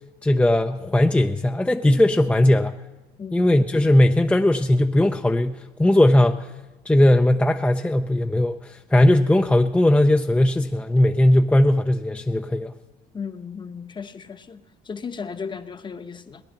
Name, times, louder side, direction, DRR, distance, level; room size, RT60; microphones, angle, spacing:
voice 1, 0.2-2.7 3.3-6.5 6.9-12.7, left 1 dB, 5° left, 0.5 m, -18 dB
voice 2, 3.2-3.5 13.1-16.4, left 6 dB, 30° left, 0.9 m, -35 dB
18.0 x 10.5 x 7.5 m
cardioid pair, 110°, 17 cm